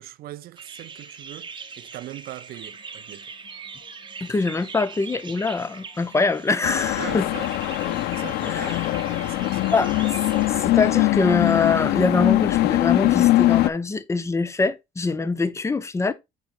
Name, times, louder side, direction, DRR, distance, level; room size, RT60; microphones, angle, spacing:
voice 1, 0.0-3.2 6.9-9.9, right 15 dB, 65° right, 0.5 m, -40 dB
sound 1, 0.6-10.5, right 5 dB, 30° right, 0.9 m, -41 dB
sound 2, 2.5-13.2, left 7 dB, 60° left, 2.3 m, -53 dB
voice 2, 4.2-7.3 8.4-8.8 9.7-10.2 10.5-16.1, left 4 dB, 15° left, 0.7 m, -24 dB
sound 3, 6.6-13.7, left 16 dB, 75° left, 0.4 m, -22 dB
9.0 x 4.2 x 2.5 m
cardioid pair, 110°, 17 cm